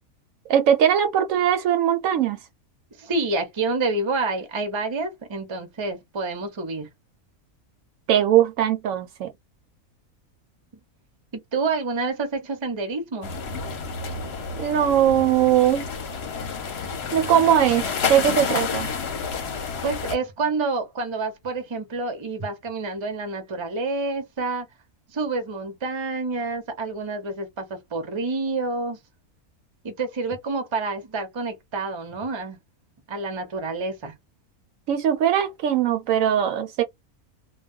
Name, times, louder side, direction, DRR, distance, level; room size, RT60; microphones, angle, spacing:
voice 1, 0.5-2.4 8.1-9.3 14.6-15.8 17.1-18.9 34.9-36.8, right 10 dB, 70° right, 0.9 m, -20 dB
voice 2, 3.0-6.9 11.3-13.3 19.8-24.7 25.1-29.0 29.8-32.6 33.1-34.1, right 3 dB, 30° right, 0.5 m, -28 dB
sound 1, 13.2-20.2, left 5 dB, 55° left, 0.8 m, -30 dB
2.3 x 2.2 x 3.5 m
omnidirectional pair, 1.5 m